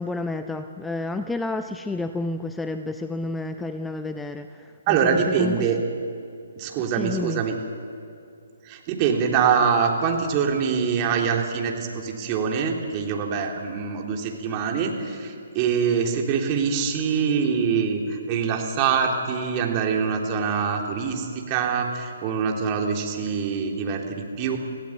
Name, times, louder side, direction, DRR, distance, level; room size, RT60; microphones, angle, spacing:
voice 1, 0.0-5.7 6.9-7.4, left 3 dB, 5° left, 9 dB, 0.6 m, -30 dB
voice 2, 4.9-5.8 6.6-7.6 8.6-24.6, right 6 dB, 30° right, 1 dB, 3.4 m, -24 dB
26.0 x 16.5 x 8.8 m, 2.4 s
figure-of-eight pair, 135°, 0 cm